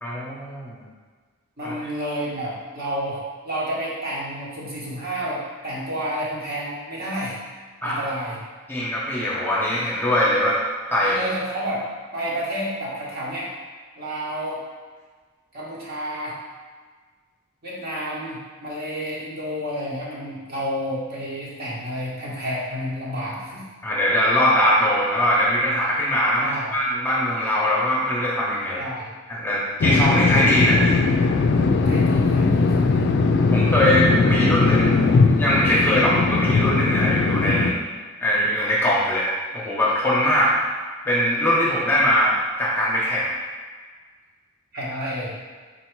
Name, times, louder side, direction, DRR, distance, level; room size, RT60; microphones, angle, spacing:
voice 1, 0.0-0.8 1.6-1.7 7.8-8.0 8.7-10.6 10.9-11.2 23.8-28.9 29.3-31.0 33.5-34.9 35.3-37.7 38.2-39.3 39.5-40.6 41.0-43.3, equal, 10° left, -7 dB, 0.8 m, -21 dB
voice 2, 1.6-7.4 7.8-8.4 11.0-11.9 12.1-13.5 14.0-14.6 15.5-16.4 17.6-23.7 26.4-26.7 28.8-29.1 31.8-33.1 44.7-45.3, equal, 45° right, -6 dB, 1.2 m, -30 dB
sound 1, 29.8-37.7, left 4 dB, 50° left, 0.3 m, -19 dB
3.9 x 2.7 x 4.5 m, 1.5 s
head